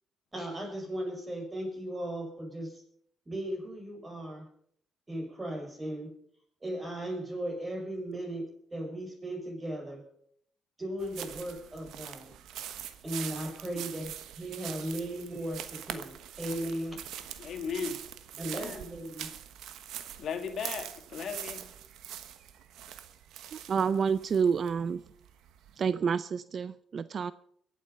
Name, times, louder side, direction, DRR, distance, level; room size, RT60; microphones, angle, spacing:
voice 1, 0.3-2.8 3.3-4.5 5.1-6.1 6.6-10.0 10.8-12.3 13.0-17.0 17.4-17.6 18.4-19.3, right 1 dB, 20° right, 2 dB, 5.8 m, -37 dB
sound 1, 11.0-25.9, right 10 dB, 85° right, 1.2 m, -43 dB
voice 2, 13.7-14.0 17.4-18.0 18.3-18.8 20.2-21.6, left 6 dB, 65° left, 5 dB, 2.1 m, -37 dB
voice 3, 23.7-25.0 25.8-27.3, right 6 dB, 50° right, 16 dB, 0.5 m, -28 dB
22.0 x 8.4 x 5.6 m, 0.65 s
cardioid pair, 90°, 0 cm